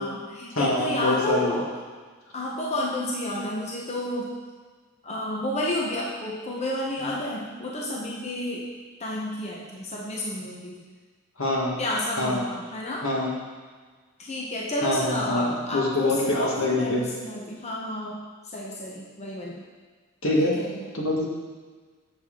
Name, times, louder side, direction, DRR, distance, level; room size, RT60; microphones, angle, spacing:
voice 1, 0.0-1.7 2.3-4.3 5.0-8.7 9.0-10.8 11.8-13.1 14.2-18.2 18.4-19.7 20.3-20.9, left 1 dB, 35° left, -3 dB, 0.9 m, -31 dB
voice 2, 0.5-1.6 7.0-7.1 11.4-11.8 12.2-12.5 13.0-13.3 14.8-15.5 15.7-17.1 20.2-20.6 20.9-21.3, left 2 dB, 75° left, -2 dB, 1.5 m, -24 dB
7.0 x 7.0 x 3.7 m, 1.4 s
head